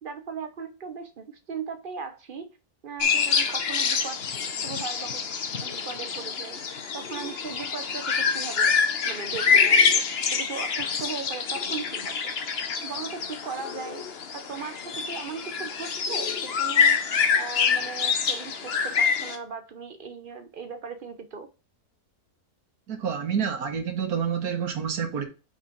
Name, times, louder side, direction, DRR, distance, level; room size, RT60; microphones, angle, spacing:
voice 1, 0.0-2.6 2.8-4.2 4.6-5.2 5.5-8.7 9.0-10.1 10.3-12.3 12.8-14.0 14.3-17.0 17.3-21.5, right 5 dB, 45° right, 0.8 m, -38 dB
sound 1, 3.0-19.4, left 6 dB, 45° left, 1.0 m, -26 dB
voice 2, 22.9-25.2, right 7 dB, 75° right, 1.6 m, -28 dB
5.5 x 4.5 x 5.1 m
omnidirectional pair, 1.6 m